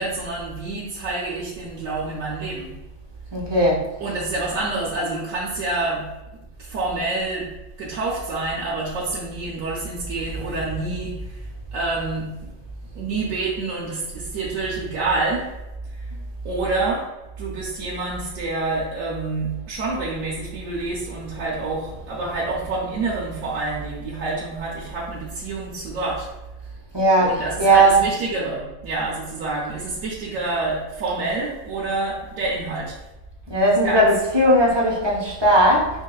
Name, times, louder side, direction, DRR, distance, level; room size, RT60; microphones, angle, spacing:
voice 1, 0.0-2.7 4.0-6.0 6.6-7.5 7.8-11.4 11.7-12.5 12.9-15.5 15.9-16.1 16.4-17.0 17.4-26.3 27.2-33.0 33.8-34.1, right 3 dB, 85° right, -5 dB, 1.1 m, -27 dB
voice 2, 3.3-3.8 16.1-16.2 26.9-27.3 27.6-28.0 33.5-35.9, right 1 dB, 30° right, -3 dB, 0.5 m, -17 dB
4.6 x 2.9 x 2.3 m, 0.99 s
omnidirectional pair, 1.4 m